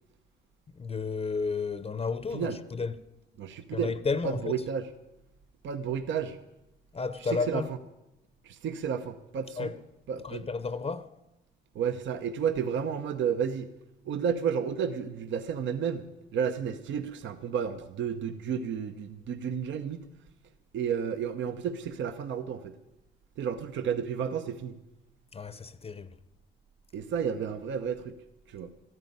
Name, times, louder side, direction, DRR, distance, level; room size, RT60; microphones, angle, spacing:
voice 1, 0.7-3.0 3.7-4.5 6.9-7.7 9.6-9.7 10.2-11.1 25.3-26.2, left 4 dB, 30° left, 0.7 m, -32 dB
voice 2, 3.4-3.9 4.2-4.9 5.6-6.4 7.3-7.6 8.4-9.7 10.1-10.5 11.7-13.7 14.1-16.0 16.3-20.1 20.7-22.8 23.4-24.7 26.9-28.1 28.5-28.7, right 7 dB, 70° right, 0.9 m, -31 dB
13.0 x 9.4 x 9.4 m
cardioid pair, 90°, 20 cm